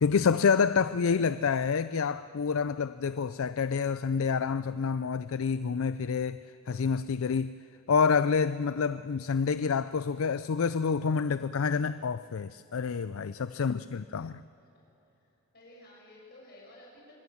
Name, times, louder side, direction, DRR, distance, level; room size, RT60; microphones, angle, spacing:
voice 1, 0.0-6.4 6.7-7.5 7.9-14.4, left 5 dB, 70° left, 0.4 m, -28 dB
voice 2, 13.4-14.2 14.6-14.7 15.5-17.2, left 1 dB, 45° left, 7.4 m, -54 dB
25.5 x 20.0 x 7.2 m
head